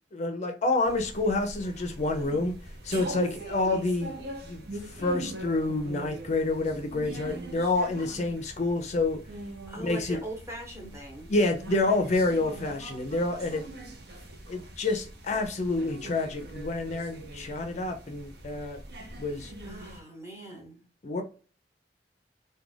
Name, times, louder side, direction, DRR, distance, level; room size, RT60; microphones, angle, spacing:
voice 1, 0.1-2.5 2.8-4.1 4.4-9.2 9.8-10.2 11.3-13.7 14.5-18.8 19.2-19.5 21.0-21.2, left 2 dB, 40° left, 0.4 m, -28 dB
sound 1, 0.8-20.0, right 1 dB, 65° right, 0.6 m, -42 dB
voice 2, 9.7-11.3 19.6-20.9, right 2 dB, 15° right, 0.9 m, -41 dB
2.4 x 2.2 x 3.1 m
head